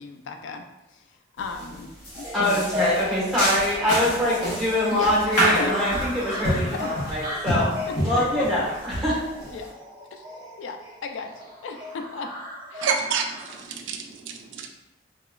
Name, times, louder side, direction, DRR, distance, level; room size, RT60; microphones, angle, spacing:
voice 1, 0.0-2.8 4.4-4.6 4.9-5.1 5.6-6.0 6.3-6.9 7.6-8.5 9.5-9.7 10.1-10.2 10.6-12.3 12.7-12.9, left 4 dB, 80° left, 5 dB, 0.3 m, -36 dB
sound 1, 1.4-1.7 2.0-9.7, equal, 55° left, 1.2 m, -28 dB
sound 2, 2.1-13.6, left 2 dB, 25° right, 0.9 m, -36 dB
voice 2, 2.3-7.7 8.0-9.2, left 1 dB, ahead, -9 dB, 1.1 m, -24 dB
voice 3, 12.8-14.7, right 5 dB, 80° right, 4 dB, 0.3 m, -28 dB
2.9 x 2.9 x 2.3 m, 0.95 s
head